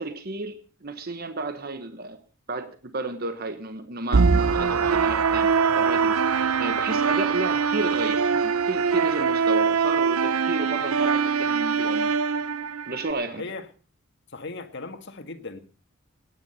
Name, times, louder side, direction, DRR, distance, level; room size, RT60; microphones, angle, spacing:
voice 1, 0.0-2.2 2.5-12.2 12.9-13.4, right 2 dB, 45° right, 1.2 m, -32 dB
sound 1, 4.1-13.1, right 5 dB, 85° right, 0.7 m, -23 dB
voice 2, 13.3-13.7 14.3-15.6, left 3 dB, 55° left, 1.7 m, -37 dB
18.0 x 9.8 x 5.5 m
head